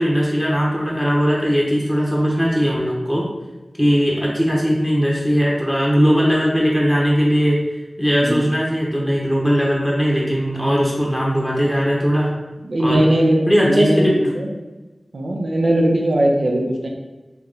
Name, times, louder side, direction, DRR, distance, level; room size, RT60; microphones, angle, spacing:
voice 1, 0.0-3.3 3.8-7.6 8.0-12.3 12.8-13.0 13.5-14.2, equal, 5° right, -4 dB, 0.8 m, -18 dB
voice 2, 12.6-14.5 15.1-16.9, right 1 dB, 75° right, 0 dB, 0.6 m, -19 dB
3.5 x 2.9 x 3.8 m, 1.1 s
wide cardioid pair, 60°, 0 cm